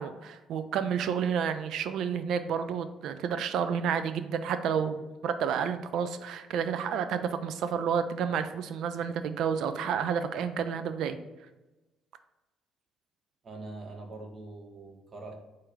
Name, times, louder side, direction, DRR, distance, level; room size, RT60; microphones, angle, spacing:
voice 1, 0.0-11.2, right 7 dB, 65° right, 10 dB, 0.3 m, -30 dB
voice 2, 13.4-15.3, right 2 dB, 45° right, 4 dB, 0.8 m, -43 dB
4.1 x 2.5 x 4.7 m, 1.1 s
hypercardioid pair, 50°, 0 cm